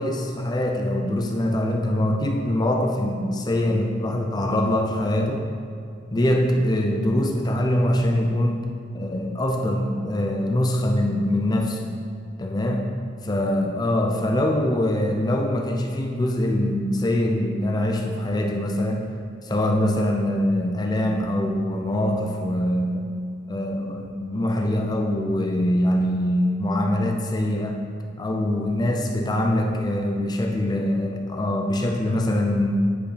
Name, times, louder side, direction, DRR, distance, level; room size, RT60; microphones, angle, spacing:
voice 1, 0.0-5.4 6.1-8.7 8.9-11.9 12.4-12.9 13.3-19.1 19.4-23.1 23.5-27.9 28.2-32.7, left 1 dB, 20° left, 2 dB, 0.5 m, -23 dB
9.2 x 5.3 x 5.0 m, 2.4 s
head